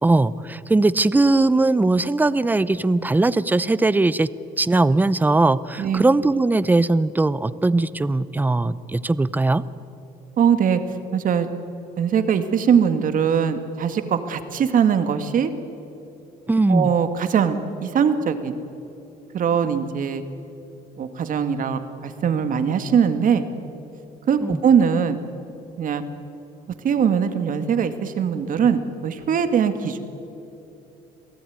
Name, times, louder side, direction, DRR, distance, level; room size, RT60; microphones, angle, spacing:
voice 1, 0.0-4.3 4.6-9.6 16.5-16.9 24.4-24.6, right 2 dB, 10° right, 17 dB, 0.7 m, -19 dB
voice 2, 10.4-10.8 11.1-11.5 12.0-15.5 16.7-18.6 19.3-20.2 21.0-23.4 24.3-25.2 25.8-26.0 26.8-30.0, right 7 dB, 55° right, 9 dB, 2.0 m, -21 dB
27.5 x 18.0 x 9.5 m, 2.9 s
cardioid pair, 110°, 17 cm